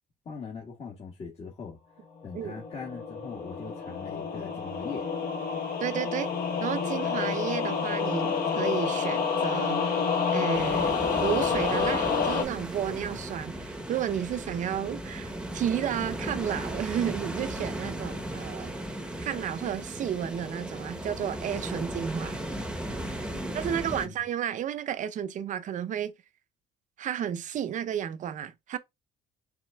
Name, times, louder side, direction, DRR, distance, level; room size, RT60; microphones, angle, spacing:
voice 1, 0.2-1.8 2.2-5.0 23.3-23.4 23.7-24.1, left 5 dB, 40° left, 1.4 m, -41 dB
sound 1, 2.2-12.4, left 5 dB, 60° left, 1.3 m, -29 dB
voice 2, 5.8-6.3 6.6-10.0 10.3-18.7 19.2-22.4 23.5-26.1 27.0-28.8, right 9 dB, 50° right, 0.5 m, -32 dB
sound 2, 10.5-24.1, right 1 dB, 5° right, 0.8 m, -36 dB
6.0 x 3.6 x 2.2 m
cardioid pair, 110°, 17 cm